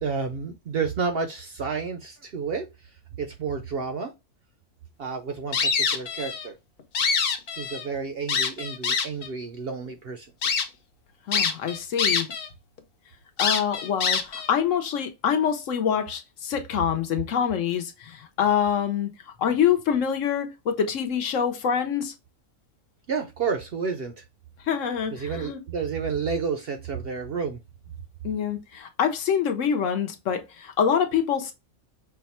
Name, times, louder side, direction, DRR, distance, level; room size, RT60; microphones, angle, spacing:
voice 1, 0.0-2.7 3.2-4.1 5.0-6.6 7.6-10.3 23.1-24.2 25.1-27.6, right 5 dB, 60° right, 0.7 m, -30 dB
sound 1, 5.5-6.5 6.8-7.9 8.3-9.3 9.9-10.0 10.4-10.7 11.3-12.5 12.8-12.9 13.4-14.5, left 5 dB, 55° left, 0.7 m, -25 dB
voice 2, 11.3-12.3 13.4-19.1 19.4-22.1 24.7-25.6 28.2-31.5, left 8 dB, 70° left, 1.1 m, -25 dB
5.6 x 2.2 x 4.2 m
omnidirectional pair, 1.4 m